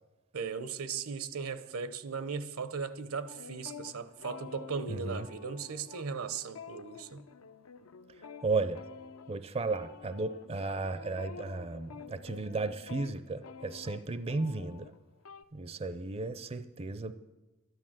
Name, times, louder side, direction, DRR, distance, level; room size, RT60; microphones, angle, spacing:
voice 1, 0.3-7.2, right 5 dB, 80° right, 0.9 m, -37 dB
sound 1, 3.3-15.4, left 6 dB, 80° left, 0.6 m, -49 dB
voice 2, 4.9-5.3 8.2-8.8 9.3-14.9 15.5-17.1, right 3 dB, 30° right, 0.4 m, -34 dB
12.5 x 10.5 x 7.5 m
head